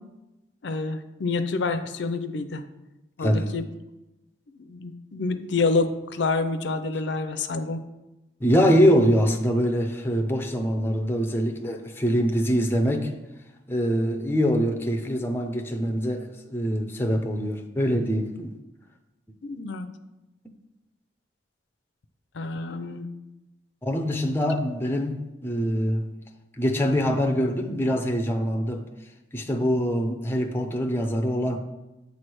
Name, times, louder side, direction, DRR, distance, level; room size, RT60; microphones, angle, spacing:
voice 1, 0.6-2.6 3.2-3.6 4.5-7.8 19.4-19.9 22.3-23.1, left 3 dB, 70° left, 9 dB, 0.5 m, -28 dB
voice 2, 3.2-3.5 8.4-13.1 13.7-18.5 23.8-26.1 26.6-28.8 29.3-31.6, equal, 10° left, 3 dB, 0.5 m, -24 dB
8.1 x 3.2 x 6.1 m, 0.99 s
head